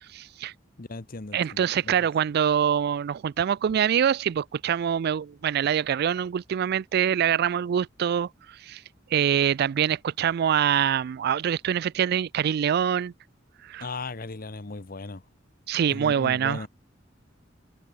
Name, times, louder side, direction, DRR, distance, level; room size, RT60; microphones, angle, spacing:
voice 1, 0.1-0.5 1.3-8.8 9.1-13.1 13.6-13.9 15.7-16.7, right 8 dB, 55° right, 0.3 m, -25 dB
voice 2, 0.8-2.1 13.8-15.2 15.9-16.7, left 3 dB, 50° left, 1.1 m, -37 dB
head